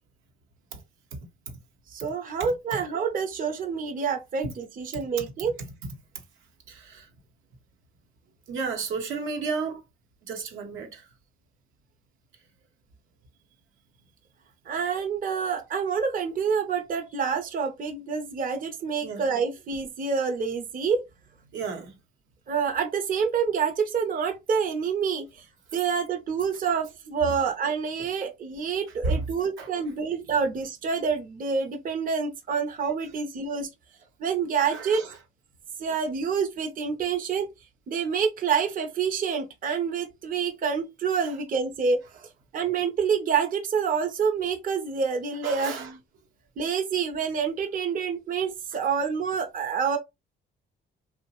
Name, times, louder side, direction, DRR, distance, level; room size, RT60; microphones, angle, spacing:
voice 1, 1.1-1.6 2.4-2.8 4.4-4.5 4.9-5.2 5.6-5.7 6.1-6.2 6.7-7.1 8.5-9.8 10.2-11.1 19.0-19.2 21.5-22.0 25.7-25.8 28.0-28.1 29.0-29.3 29.6-29.7 34.7-35.2 41.2-41.4 42.1-42.2 45.4-45.9 48.7-48.9, right 4 dB, 80° right, 0.8 m, -33 dB
voice 2, 1.9-5.5 14.7-21.0 22.5-25.4 25.7-33.7 34.2-35.0 35.8-37.5 37.9-42.0 42.5-45.9 46.6-50.0, right 6 dB, 45° right, 0.6 m, -27 dB
2.8 x 2.1 x 2.8 m
cardioid pair, 90°, 20 cm